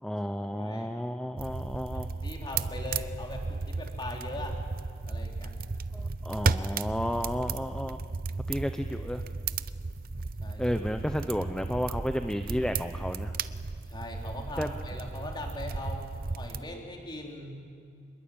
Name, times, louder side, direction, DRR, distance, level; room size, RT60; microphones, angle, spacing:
voice 1, 0.0-2.1 5.9-8.0 8.5-9.2 10.6-13.4 14.6-14.7, equal, 5° left, 7 dB, 0.8 m, -32 dB
voice 2, 0.6-0.9 1.9-4.6 5.1-5.5 10.4-10.8 13.9-17.6, left 1 dB, 25° left, 1 dB, 4.0 m, -40 dB
sound 1, 1.4-16.6, right 4 dB, 55° right, 0.7 m, -34 dB
27.5 x 21.5 x 8.9 m, 2.4 s
head